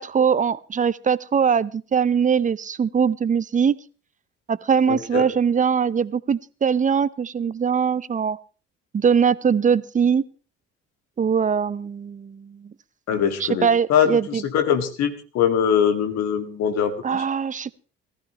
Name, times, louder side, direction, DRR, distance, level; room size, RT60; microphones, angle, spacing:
voice 1, 0.0-3.7 4.5-8.4 8.9-10.2 11.2-12.6 13.1-14.4 17.0-17.8, right 7 dB, 25° right, 20 dB, 0.7 m, -21 dB
voice 2, 4.9-5.3 13.1-17.2, left 8 dB, 55° left, 7 dB, 2.0 m, -22 dB
19.5 x 15.0 x 3.0 m, 0.37 s
figure-of-eight pair, 50°, 31 cm